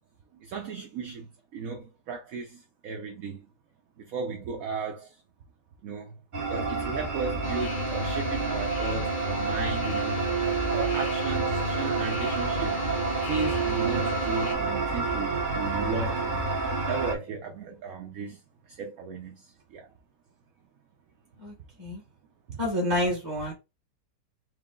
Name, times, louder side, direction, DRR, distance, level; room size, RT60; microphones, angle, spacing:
voice 1, 0.3-3.5 4.0-5.2 5.8-12.8 13.2-19.9 22.5-22.6, right 5 dB, 65° right, 1.0 m, -35 dB
sound 1, 6.3-17.1, right 3 dB, 40° right, 0.8 m, -29 dB
sound 2, 7.4-14.5, left 1 dB, 85° left, 1.5 m, -36 dB
voice 2, 22.6-23.5, left 1 dB, 20° right, 1.0 m, -28 dB
4.6 x 2.0 x 3.6 m
omnidirectional pair, 1.8 m